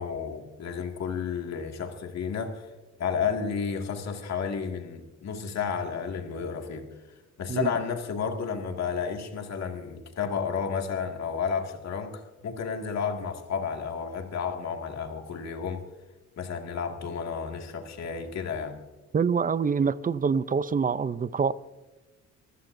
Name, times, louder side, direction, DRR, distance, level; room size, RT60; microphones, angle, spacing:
voice 1, 0.0-2.7 3.0-6.8 7.4-15.8 16.4-18.8, left 6 dB, 60° left, 2.2 m, -32 dB
voice 2, 19.1-21.5, right 6 dB, 30° right, 0.5 m, -25 dB
24.5 x 15.0 x 2.7 m
cardioid pair, 90°, 30 cm